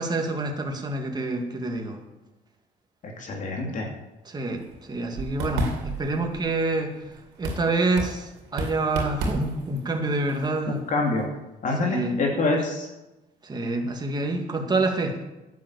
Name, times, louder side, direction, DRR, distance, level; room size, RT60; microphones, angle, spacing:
voice 1, 0.0-2.0 4.2-4.6 4.9-6.9 7.4-10.8 11.8-12.2 13.4-15.2, right 2 dB, 25° right, 2 dB, 2.3 m, -27 dB
voice 2, 3.2-3.9 10.9-11.3 11.6-12.9, left 3 dB, 50° left, 0 dB, 2.8 m, -25 dB
sound 1, 4.6-11.2, right 2 dB, 90° right, 2.9 m, -33 dB
11.5 x 7.5 x 8.5 m, 1.0 s
cardioid pair, 110°, 17 cm